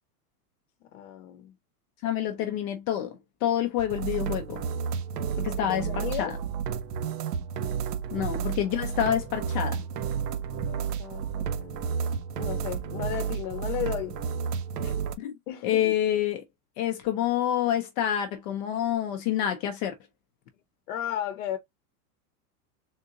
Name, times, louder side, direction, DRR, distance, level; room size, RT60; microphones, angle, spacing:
voice 1, 0.8-1.5 5.6-6.3 10.5-11.8 12.4-14.2 15.5-15.9 20.9-21.6, left 11 dB, 60° left, 0.7 m, -35 dB
voice 2, 2.0-4.6 5.4-6.3 8.1-9.8 14.8-15.4 15.6-16.4 16.8-19.9, left 11 dB, 30° left, 0.4 m, -28 dB
sound 1, 3.8-15.2, right 7 dB, 85° right, 0.7 m, -31 dB
3.6 x 2.8 x 2.5 m
supercardioid pair, 135°, 46 cm